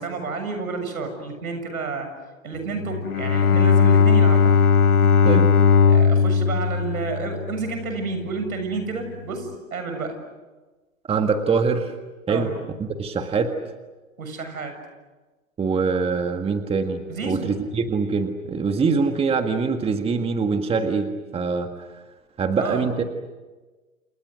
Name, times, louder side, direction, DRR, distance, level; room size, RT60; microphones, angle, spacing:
voice 1, 0.0-2.1 2.4-4.5 5.9-10.2 12.3-12.6 14.2-14.8 17.1-17.5 22.6-22.8, right 4 dB, 80° right, 7 dB, 7.3 m, -30 dB
Bowed string instrument, 2.8-8.0, left 5 dB, 90° left, 1.1 m, -18 dB
voice 2, 11.1-11.9 12.3-12.5 12.8-13.6 15.6-21.9 22.4-23.0, right 5 dB, 15° right, 6 dB, 1.7 m, -23 dB
29.5 x 28.5 x 6.5 m, 1.2 s
hypercardioid pair, 120°, 43 cm